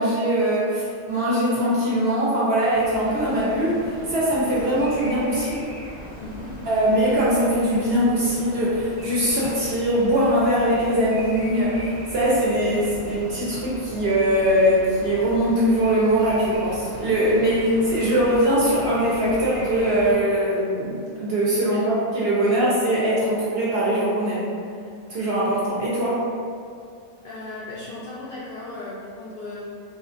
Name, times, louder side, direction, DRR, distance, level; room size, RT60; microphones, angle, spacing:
voice 1, 0.0-5.6 6.6-24.5 25.1-26.3, equal, 60° right, -7 dB, 0.7 m, -21 dB
sound 1, 2.7-20.1, equal, 10° right, 0.7 m, -39 dB
voice 2, 6.2-6.6 21.7-21.9 22.6-22.7 27.2-29.6, left 2 dB, 70° left, -7 dB, 0.5 m, -36 dB
4.1 x 2.4 x 2.4 m, 2.3 s
omnidirectional pair, 1.5 m